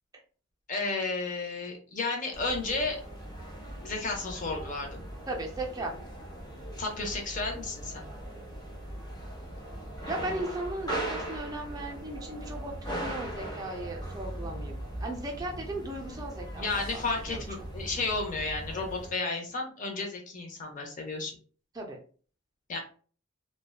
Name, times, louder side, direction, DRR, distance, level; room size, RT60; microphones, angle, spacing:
voice 1, 0.7-3.0 3.8-5.1 6.8-8.0 16.5-21.3 22.7-22.8, left 3 dB, 40° left, 1 dB, 0.6 m, -32 dB
sound 1, 2.3-19.1, right 1 dB, 20° left, 0.9 m, -39 dB
voice 2, 5.3-5.9 10.0-17.0 17.3-17.4 21.7-22.0, right 1 dB, 20° right, 0 dB, 0.4 m, -37 dB
2.6 x 2.1 x 2.2 m, 0.42 s
head